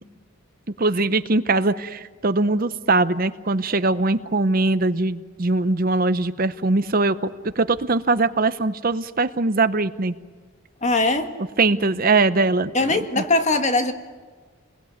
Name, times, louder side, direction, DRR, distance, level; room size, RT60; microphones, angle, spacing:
voice 1, 0.8-7.3 7.6-10.1 11.6-13.0, right 3 dB, 40° right, 12 dB, 0.7 m, -21 dB
voice 2, 10.8-11.3 12.7-13.9, left 2 dB, 35° left, 6 dB, 1.9 m, -20 dB
29.5 x 21.5 x 9.3 m, 1.5 s
head